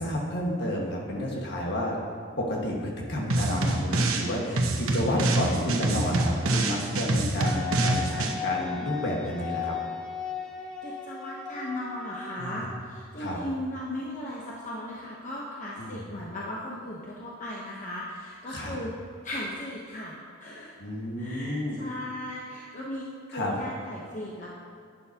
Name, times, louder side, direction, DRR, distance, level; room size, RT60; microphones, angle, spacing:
voice 1, 0.0-2.0 2.4-9.7 12.4-12.7 13.2-13.4 15.8-16.0 18.5-18.8 20.8-21.8 23.3-23.5, left 1 dB, 55° left, -2 dB, 1.6 m, -30 dB
sound 1, 3.3-4.3 4.6-8.3, right 2 dB, 85° right, 1.0 m, -26 dB
Wind instrument woodwind instrument, 7.4-13.0, left 7 dB, 5° left, 0.8 m, -36 dB
voice 2, 10.8-18.9 19.2-20.7 21.2-24.5, left 1 dB, 40° left, -4 dB, 0.9 m, -37 dB
11.0 x 9.1 x 2.9 m, 2.4 s
head